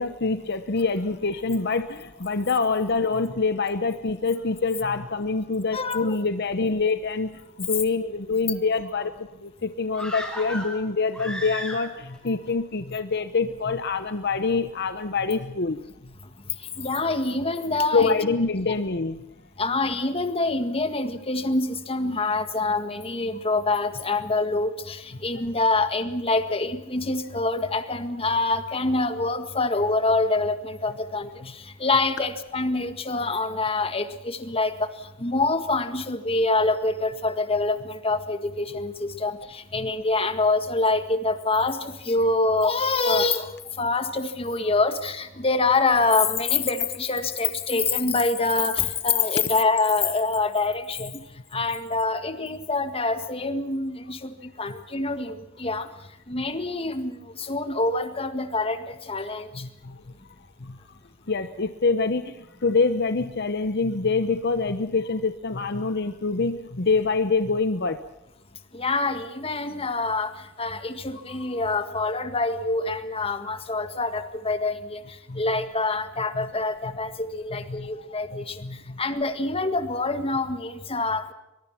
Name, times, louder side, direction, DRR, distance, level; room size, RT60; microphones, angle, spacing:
voice 1, 0.0-7.3 7.6-15.8 17.9-19.2 39.7-39.9 51.5-51.6 59.5-60.0 60.6-60.8 61.3-68.0 71.3-71.6 75.3-75.4 76.3-76.5 77.5-79.0, left 4 dB, 55° left, 10 dB, 1.0 m, -26 dB
voice 2, 5.7-6.1 16.8-18.2 19.6-34.9 35.2-43.5 43.8-51.1 51.5-55.9 56.3-59.5 68.7-70.3 70.6-75.0 75.4-78.6 79.0-81.3, left 3 dB, 30° left, 9 dB, 1.8 m, -25 dB
sound 1, 9.9-12.2 12.5-12.6, equal, 5° left, 6.5 m, -35 dB
24.0 x 21.5 x 5.9 m, 0.92 s
head